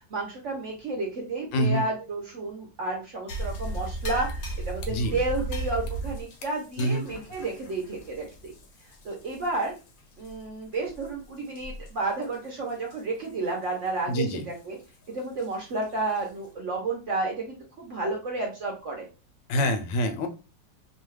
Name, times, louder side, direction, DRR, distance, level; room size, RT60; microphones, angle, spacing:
voice 1, 0.1-8.5 9.0-9.7 10.2-14.8 15.1-19.0, right 2 dB, 60° right, 0 dB, 0.8 m, -31 dB
voice 2, 1.5-1.8 4.9-5.2 6.8-7.0 14.1-14.5 19.5-20.3, equal, 85° left, 7 dB, 1.3 m, -26 dB
sound 1, 3.3-9.9 10.2-10.3 10.9-11.1 11.6-11.9 12.2-12.3 12.9-13.0 15.4-15.5 16.1-16.2, right 2 dB, 65° left, 0.9 m, -35 dB
3.0 x 2.3 x 3.1 m, 0.32 s
omnidirectional pair, 1.9 m